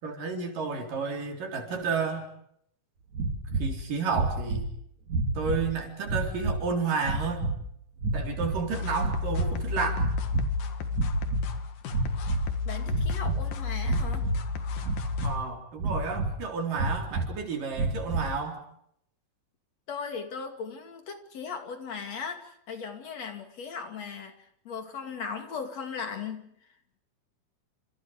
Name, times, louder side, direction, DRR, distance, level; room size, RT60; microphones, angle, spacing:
voice 1, 0.0-2.3 3.6-4.7 5.4-7.5 8.1-10.1 15.2-18.6, right 4 dB, 75° right, 3 dB, 5.5 m, -31 dB
sound 1, 3.1-3.7 4.1-4.7 5.1-5.7 6.0-6.6 7.0-7.6 8.0-8.7 8.9-9.6 9.9-10.6 10.9-11.5 11.9-12.5 12.8-13.4 13.8-14.4 14.8-15.4 15.8-16.4 16.8-17.3 17.7-18.3, right 3 dB, 60° right, 4.6 m, -29 dB
sound 2, 8.7-15.4, left 5 dB, 75° left, 3.6 m, -32 dB
voice 2, 12.6-14.3 19.9-26.5, left 5 dB, 55° left, 6 dB, 3.4 m, -38 dB
29.5 x 27.5 x 5.1 m, 0.71 s
omnidirectional pair, 3.8 m